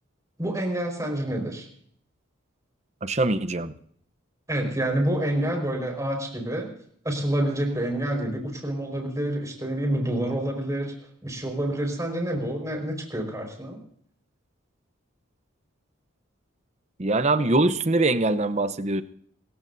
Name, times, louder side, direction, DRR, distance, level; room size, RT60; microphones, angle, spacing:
voice 1, 0.4-1.7 4.5-6.7 7.0-10.9 11.2-13.8, right 1 dB, 15° right, 3 dB, 4.8 m, -28 dB
voice 2, 3.0-3.7 17.0-19.0, right 2 dB, 35° right, 11 dB, 0.8 m, -23 dB
27.5 x 15.0 x 2.7 m, 0.62 s
head